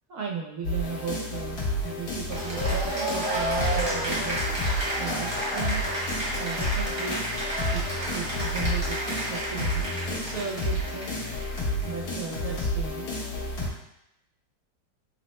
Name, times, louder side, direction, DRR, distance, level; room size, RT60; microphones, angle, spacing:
voice 1, 0.1-4.4 5.0-5.8 6.4-7.8 8.1-11.2 11.8-13.1, right 6 dB, 70° right, -1 dB, 0.7 m, -36 dB
sound 1, 0.6-13.7, left 1 dB, 70° left, 1.6 m, -31 dB
Cheering / Applause, 2.3-11.8, right 1 dB, 25° right, 0.7 m, -31 dB
4.0 x 2.0 x 4.1 m, 0.83 s
omnidirectional pair, 1.9 m